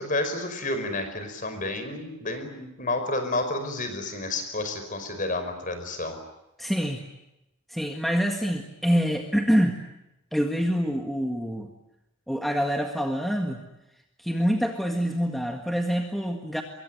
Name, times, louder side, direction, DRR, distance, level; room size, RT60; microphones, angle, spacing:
voice 1, 0.0-6.2, left 2 dB, 35° left, 8 dB, 5.2 m, -30 dB
voice 2, 6.6-7.0 7.7-9.8 10.3-11.7 12.3-13.6 14.2-16.6, equal, ahead, 3 dB, 1.8 m, -26 dB
25.0 x 23.0 x 9.3 m, 0.93 s
head